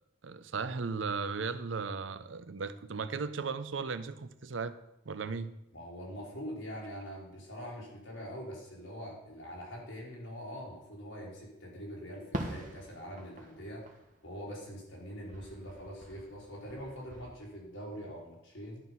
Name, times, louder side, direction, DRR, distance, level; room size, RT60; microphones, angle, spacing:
voice 1, 0.2-4.8 5.1-5.5, right 4 dB, 75° right, 13 dB, 0.6 m, -36 dB
voice 2, 5.7-13.9 14.2-18.8, equal, 80° left, -3 dB, 3.8 m, -44 dB
Fireworks, 12.3-15.0 15.3-17.2, right 1 dB, 40° right, 1.3 m, -44 dB
11.5 x 5.6 x 5.7 m, 0.86 s
head